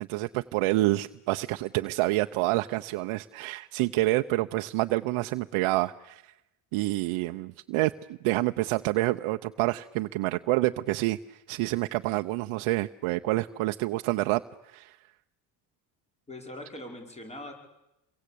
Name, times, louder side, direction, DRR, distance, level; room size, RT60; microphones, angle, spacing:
voice 1, 0.1-6.3 6.7-15.0, right 19 dB, 85° right, 8 dB, 0.9 m, -28 dB
voice 2, 16.3-17.5, left 1 dB, 15° left, 3 dB, 5.3 m, -41 dB
28.0 x 23.0 x 8.5 m, 0.92 s
cardioid pair, 130°, 49 cm